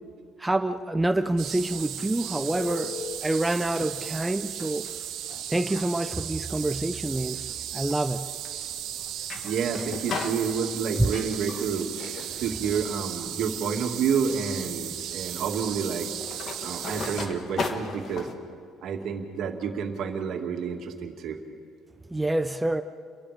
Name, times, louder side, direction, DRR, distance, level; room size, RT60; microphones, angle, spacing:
voice 1, 0.4-4.9 5.5-7.4 7.7-8.3 22.1-22.8, right 2 dB, 10° right, 9 dB, 0.5 m, -27 dB
sound 1, 1.2-18.3, left 4 dB, 40° left, 1.7 m, -40 dB
sound 2, 1.4-17.3, right 11 dB, 75° right, 1.8 m, -36 dB
Telephone, 2.6-3.2 3.8-3.9 5.7-5.8 6.2-6.4 11.7-12.5 19.6-19.8, left 6 dB, 70° left, 3.7 m, -40 dB
voice 2, 9.4-11.9 12.4-16.1 16.6-18.3 18.8-21.4, right 6 dB, 60° right, 3 dB, 2.4 m, -29 dB
29.5 x 22.5 x 5.2 m, 2.2 s
cardioid pair, 155°, 0 cm